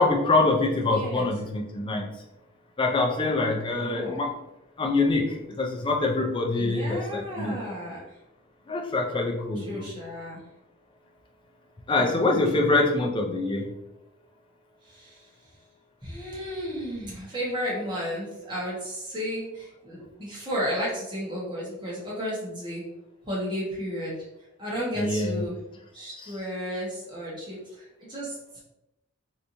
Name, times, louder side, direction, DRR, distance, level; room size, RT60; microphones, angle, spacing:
voice 1, 0.0-2.1 2.8-4.3 4.8-7.6 8.7-9.9 11.9-13.7 25.0-25.4, left 2 dB, 25° left, 1 dB, 0.4 m, -24 dB
voice 2, 0.8-1.3 3.8-4.2 6.5-8.1 9.5-10.4 12.0-12.8 14.8-15.3 16.0-22.8 23.2-24.3 24.6-25.6 25.9-28.4, equal, 20° right, -6 dB, 1.2 m, -33 dB
3.3 x 2.9 x 2.6 m, 0.88 s
head